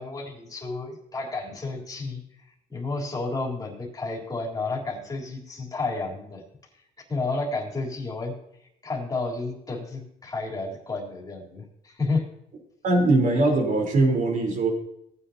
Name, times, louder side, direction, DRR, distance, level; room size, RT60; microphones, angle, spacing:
voice 1, 0.0-2.2 2.7-6.4 7.1-8.3 8.6-12.2, left 3 dB, 20° left, -2 dB, 3.7 m, -31 dB
voice 2, 12.8-14.7, right 2 dB, 50° right, 2 dB, 3.9 m, -21 dB
18.5 x 9.7 x 2.9 m, 0.78 s
cardioid pair, 110°, 17 cm